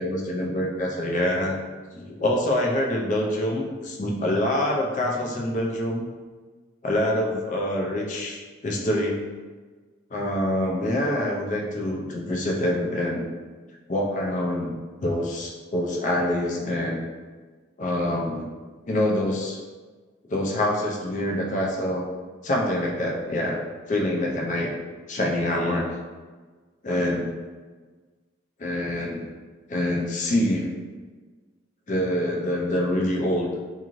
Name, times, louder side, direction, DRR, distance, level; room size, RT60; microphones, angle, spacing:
voice 1, 0.0-1.5 1.9-6.1 6.8-9.2 10.1-13.2 13.9-17.0 17.8-18.5 18.9-19.6 20.3-22.0 22.4-23.6 23.9-24.7 25.1-25.9 26.8-27.3 28.6-29.2 29.7-30.7 31.9-33.5, left 1 dB, 40° left, -1 dB, 0.4 m, -25 dB
2.6 x 2.5 x 2.9 m, 1.4 s
head